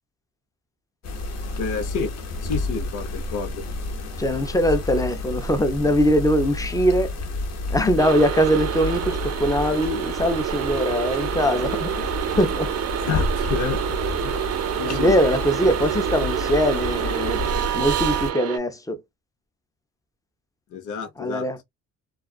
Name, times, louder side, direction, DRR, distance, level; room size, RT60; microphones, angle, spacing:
sound 1, 1.0-18.3, left 2 dB, 60° left, 0.9 m, -30 dB
voice 1, 1.6-2.1 2.4-3.6 13.0-13.8 14.2-14.3 14.8-15.2 20.7-21.5, left 5 dB, 90° left, 0.8 m, -29 dB
voice 2, 4.2-7.1 7.7-12.1 12.4-12.7 14.8-17.4 17.7-19.0 21.2-21.6, equal, 10° left, 0.6 m, -22 dB
sound 2, 8.0-18.6, right 10 dB, 55° right, 0.5 m, -27 dB
2.3 x 2.3 x 2.4 m
cardioid pair, 90°, 30 cm